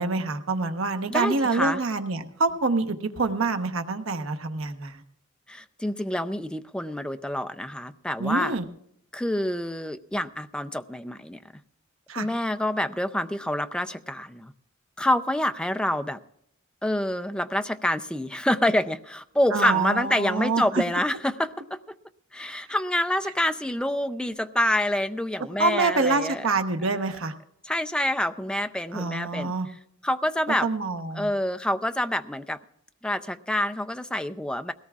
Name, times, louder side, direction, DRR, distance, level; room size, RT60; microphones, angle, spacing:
voice 1, 0.0-5.0 8.2-8.6 12.1-12.3 19.5-20.8 25.6-27.3 28.9-29.7 30.6-31.3, right 3 dB, 90° right, 8 dB, 1.0 m, -26 dB
voice 2, 1.1-1.8 5.5-8.6 9.1-11.4 12.2-14.5 15.0-16.2 16.8-21.8 22.3-26.5 27.6-29.5 30.0-30.7 31.1-32.6 33.0-34.7, left 1 dB, 5° left, 9 dB, 0.5 m, -27 dB
21.0 x 17.5 x 2.4 m, 0.74 s
head